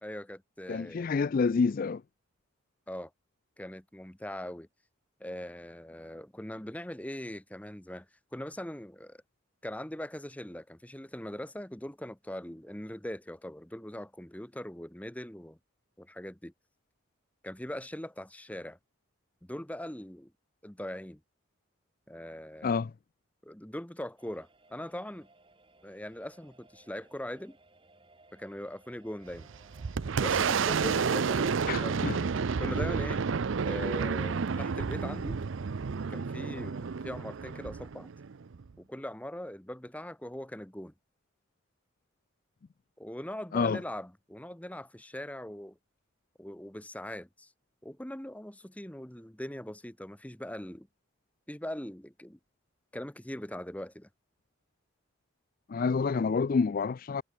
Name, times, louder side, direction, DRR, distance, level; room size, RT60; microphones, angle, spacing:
voice 1, 0.0-1.1 2.9-3.1 3.6-4.7 5.2-8.1 8.3-9.2 9.6-15.6 16.0-16.5 17.4-18.8 19.4-20.3 20.6-21.2 22.1-22.8 23.4-25.3 25.8-27.6 28.3-29.5 30.2-32.3 32.6-33.2 33.6-35.4 36.1-38.1 38.8-40.9 43.0-45.8 46.4-47.5 47.8-50.9 51.5-52.4 52.9-54.1, left 1 dB, 5° left, 1.1 m, -41 dB
voice 2, 0.7-2.0 22.6-22.9 31.7-32.2 43.5-43.8 55.7-57.2, left 5 dB, 40° left, 0.3 m, -28 dB
sound 1, 24.2-34.0, right 2 dB, 25° right, 4.0 m, -61 dB
Boom, 29.3-38.7, right 5 dB, 65° right, 0.5 m, -30 dB
head